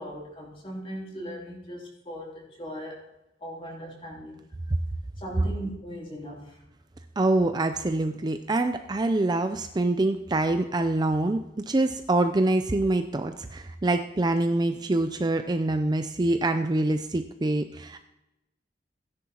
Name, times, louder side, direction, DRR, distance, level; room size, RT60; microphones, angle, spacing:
voice 1, 0.0-3.0 3.4-4.4 5.2-6.6, equal, 30° left, -3 dB, 3.2 m, -38 dB
voice 2, 7.2-18.1, right 2 dB, 25° right, 8 dB, 0.5 m, -25 dB
16.0 x 10.0 x 3.0 m, 0.90 s
head